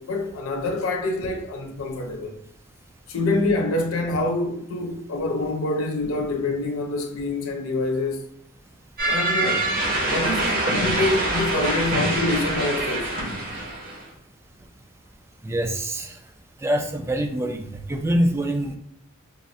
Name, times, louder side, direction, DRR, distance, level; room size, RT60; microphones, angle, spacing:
voice 1, 0.0-2.3 3.1-8.3 9.1-9.7 10.0-13.1, left 2 dB, 85° left, 0.4 m, -26 dB
sound 1, 9.0-14.0, right 1 dB, 45° right, 0.8 m, -25 dB
voice 2, 15.4-16.2 16.6-18.8, right 1 dB, 15° right, 0.3 m, -25 dB
3.5 x 2.1 x 2.5 m
head